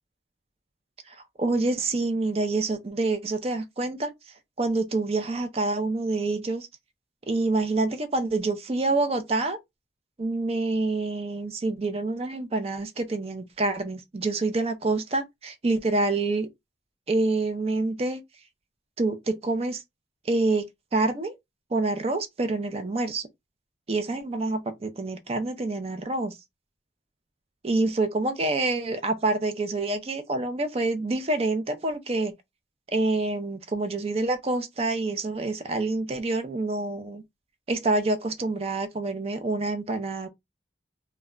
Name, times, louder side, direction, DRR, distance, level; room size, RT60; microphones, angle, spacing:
voice 1, 1.1-4.1 4.6-6.7 7.3-9.6 10.2-16.5 17.1-18.2 19.0-19.8 20.3-20.6 20.9-21.3 21.7-23.3 23.9-26.4 27.6-32.3 32.9-37.2 37.7-40.3, right 2 dB, 35° right, 0.5 m, -27 dB
2.2 x 2.1 x 3.6 m
head